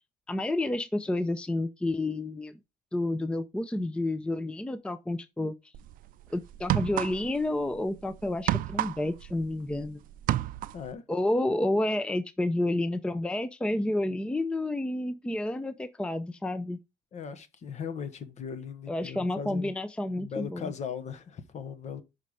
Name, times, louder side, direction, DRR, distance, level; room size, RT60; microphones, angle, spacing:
voice 1, 0.3-2.5 2.9-5.5 6.3-10.0 11.1-16.8 18.9-20.7, left 1 dB, 5° left, 0.5 m, -30 dB
sound 1, 5.7-5.9 6.5-7.5 7.7-9.9 10.1-10.9, right 14 dB, 70° right, 0.4 m, -29 dB
voice 2, 17.1-19.7 20.1-22.0, left 7 dB, 50° left, 1.1 m, -38 dB
5.6 x 5.3 x 4.8 m
cardioid pair, 110°, 15 cm